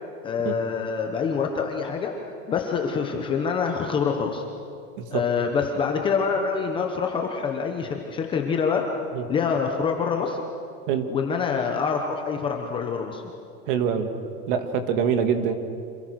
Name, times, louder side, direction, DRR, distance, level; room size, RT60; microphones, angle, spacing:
voice 1, 0.2-4.4 5.1-8.9 9.3-10.4 11.1-13.2, left 6 dB, 10° left, 2 dB, 0.9 m, -26 dB
voice 2, 13.7-14.1 14.5-15.5, right 7 dB, 35° right, 8 dB, 2.0 m, -24 dB
28.5 x 27.0 x 6.4 m, 2.3 s
supercardioid pair, 175°, 44 cm